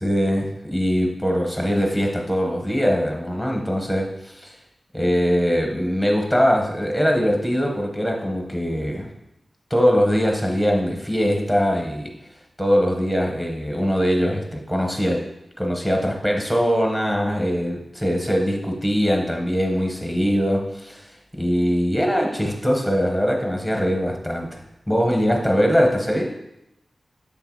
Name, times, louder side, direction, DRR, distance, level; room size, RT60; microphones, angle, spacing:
voice 1, 0.0-4.5 4.9-9.1 9.7-12.1 12.6-15.2 15.6-21.0 21.3-24.6 24.9-26.3, equal, 5° right, 1 dB, 1.1 m, -22 dB
7.3 x 3.4 x 4.8 m, 0.86 s
wide cardioid pair, 115°, 0 cm